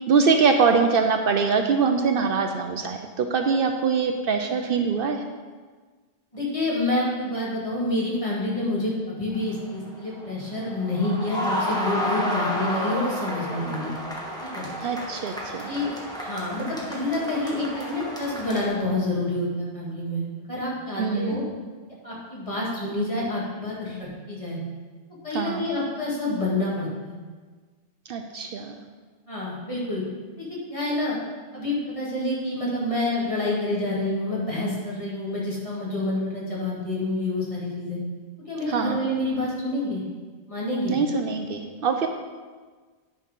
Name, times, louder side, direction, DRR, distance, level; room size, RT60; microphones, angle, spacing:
voice 1, 0.1-5.2 14.8-15.7 21.0-21.4 25.3-25.6 28.1-28.8 38.7-39.0 40.9-42.1, right 5 dB, 65° right, 5 dB, 0.7 m, -23 dB
voice 2, 6.3-13.9 14.4-14.7 15.7-20.2 20.5-21.4 22.0-24.6 25.2-27.1 29.3-30.0 30.4-31.2 31.5-38.0 38.4-40.0 40.5-41.0, left 2 dB, 30° left, -6 dB, 2.2 m, -28 dB
sound 1, 9.3-18.7, equal, 5° left, 1.2 m, -31 dB
9.8 x 4.3 x 5.3 m, 1.4 s
omnidirectional pair, 1.1 m